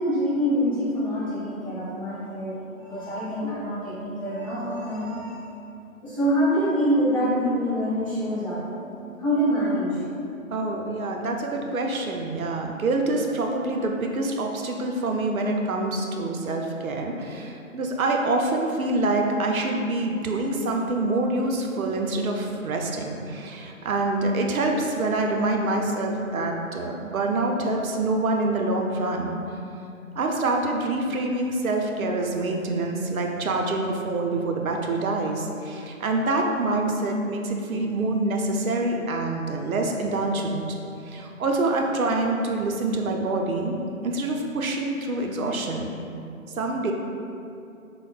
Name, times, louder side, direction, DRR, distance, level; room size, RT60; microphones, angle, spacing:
voice 1, 0.0-5.3 6.0-8.9 9.2-10.0, equal, 25° left, -17 dB, 1.0 m, -25 dB
voice 2, 10.5-29.4 30.2-40.6 41.0-45.9 46.6-46.9, right 2 dB, 80° right, 2 dB, 0.5 m, -26 dB
4.4 x 2.0 x 2.3 m, 2.7 s
figure-of-eight pair, 180°, 42 cm